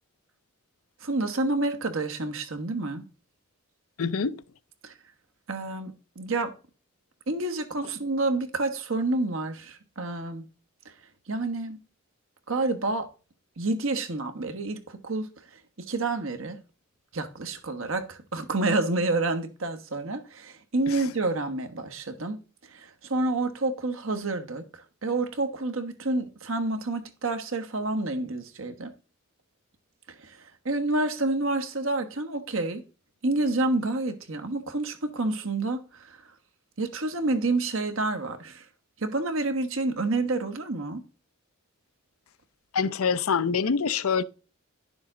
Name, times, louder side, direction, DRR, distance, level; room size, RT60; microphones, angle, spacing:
voice 1, 1.0-3.0 4.8-4.9 5.5-6.5 7.3-10.4 11.3-11.8 12.5-13.1 13.6-15.3 15.9-16.6 17.1-22.4 22.7-24.6 25.0-28.9 30.2-30.4 30.6-32.8 33.2-36.2 36.8-38.6 39.0-41.0, right 2 dB, 70° right, 1.3 m, -28 dB
voice 2, 4.0-4.4 42.7-44.2, left 6 dB, 80° left, 0.6 m, -25 dB
11.0 x 6.9 x 3.8 m
head